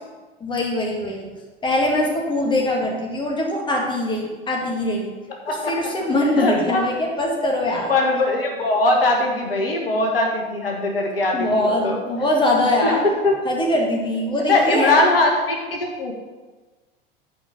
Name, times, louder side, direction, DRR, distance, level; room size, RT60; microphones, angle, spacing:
voice 1, 0.4-1.3 1.6-5.1 5.5-8.0 11.3-13.1 13.5-15.0, left 1 dB, 15° left, 0 dB, 1.9 m, -22 dB
voice 2, 6.4-6.9 7.9-12.0 12.8-13.4 14.5-16.1, left 2 dB, 75° left, 1 dB, 1.5 m, -21 dB
8.5 x 5.0 x 6.7 m, 1.3 s
figure-of-eight pair, 80°, 30 cm